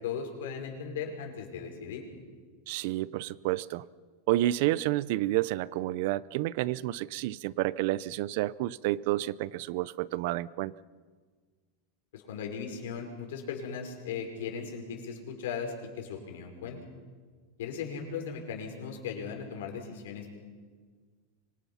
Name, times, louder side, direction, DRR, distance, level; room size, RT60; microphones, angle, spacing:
voice 1, 0.0-2.0 12.1-16.8 17.6-20.3, left 6 dB, 80° left, 2 dB, 5.6 m, -37 dB
voice 2, 2.7-3.9 4.3-10.7, right 16 dB, 55° right, 20 dB, 0.6 m, -30 dB
25.5 x 23.0 x 5.7 m, 1.5 s
supercardioid pair, 160°, 0 cm